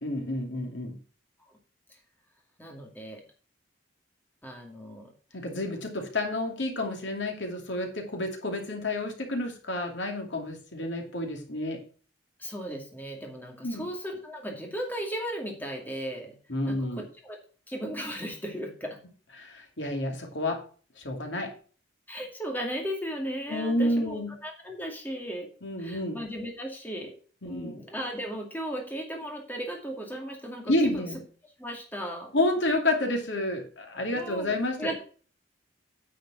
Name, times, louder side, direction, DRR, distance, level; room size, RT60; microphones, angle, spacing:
voice 1, 0.0-1.0 5.3-11.8 13.6-13.9 16.5-17.0 19.4-20.6 21.0-21.5 23.5-24.3 25.6-26.2 27.4-27.8 30.7-31.2 32.3-34.8, left 1 dB, 70° left, 3 dB, 2.6 m, -29 dB
voice 2, 2.6-3.2 4.4-5.1 12.4-16.4 16.7-17.4 17.7-19.0 22.1-25.5 25.8-27.1 27.4-31.1 31.6-32.3 34.1-35.0, equal, 10° left, 1 dB, 2.3 m, -36 dB
9.6 x 5.2 x 6.2 m, 0.40 s
head